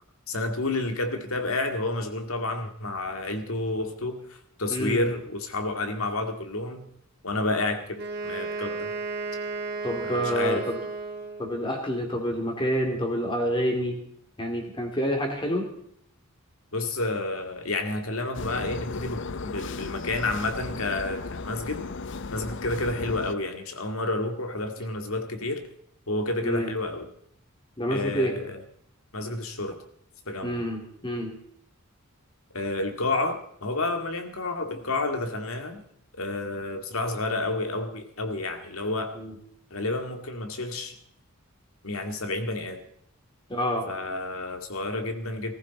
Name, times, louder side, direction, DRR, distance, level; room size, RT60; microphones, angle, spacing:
voice 1, 0.3-6.9 7.2-8.9 10.0-10.7 16.7-21.8 22.3-25.6 26.1-27.1 27.9-28.6 29.1-29.8 30.3-30.6 32.5-35.8 36.2-39.1 39.7-41.0 41.8-42.8 43.9-45.5, left 2 dB, 70° left, 6 dB, 2.1 m, -30 dB
voice 2, 4.7-5.1 9.8-10.8 11.4-14.0 14.4-15.7 26.4-26.7 27.8-28.3 30.4-31.4 39.1-39.3 43.5-43.9, equal, 20° left, 3 dB, 2.9 m, -28 dB
Wind instrument woodwind instrument, 7.9-11.7, right 4 dB, 50° right, 1.7 m, -33 dB
sound 1, 18.3-23.3, left 4 dB, 55° left, 0.6 m, -35 dB
19.5 x 14.5 x 4.2 m, 0.68 s
head